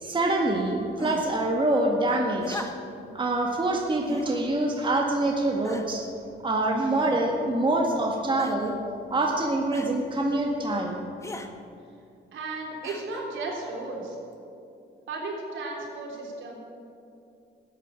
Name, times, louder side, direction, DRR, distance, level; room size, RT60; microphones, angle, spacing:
voice 1, 0.0-2.6 3.1-6.0 6.4-8.7 9.1-11.0, right 2 dB, 25° right, 0 dB, 1.8 m, -25 dB
sound 1, 1.0-1.4 2.4-3.1 4.0-4.3 5.1-5.2 5.6-6.1 6.9-7.5 8.4-8.8 9.7-10.0 11.2-11.5 12.8-13.3 14.3-14.4, left 2 dB, 15° left, 1.1 m, -40 dB
voice 2, 12.3-14.2 15.1-16.6, right 3 dB, 75° right, -2 dB, 3.7 m, -34 dB
14.0 x 8.5 x 8.9 m, 2.6 s
cardioid pair, 90°, 20 cm